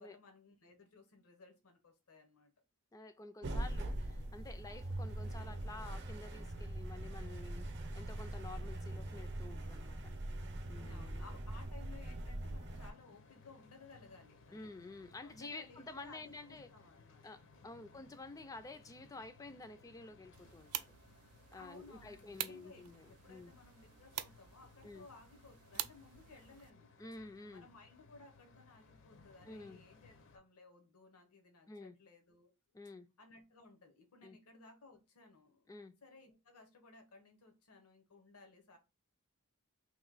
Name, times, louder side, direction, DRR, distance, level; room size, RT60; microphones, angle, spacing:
voice 1, 0.0-2.5 10.7-14.7 15.2-17.2 17.8-17.9 21.5-26.9 27.5-32.5 33.2-35.7 36.0-38.8, left 3 dB, 85° left, 0.9 m, -59 dB
voice 2, 2.9-7.7 7.9-10.0 10.7-11.2 14.5-16.7 17.2-20.9 21.5-23.5 24.8-25.1 27.0-27.7 29.5-29.8 31.7-32.0 32.7-33.1 34.2-34.4 35.7-35.9, left 3 dB, 15° left, 0.3 m, -50 dB
sound 1, 3.4-12.9, right 1 dB, 55° right, 0.7 m, -42 dB
sound 2, 12.7-30.4, left 4 dB, 60° left, 0.6 m, -63 dB
sound 3, 20.3-26.7, right 13 dB, 80° right, 0.4 m, -47 dB
3.0 x 2.6 x 3.9 m
head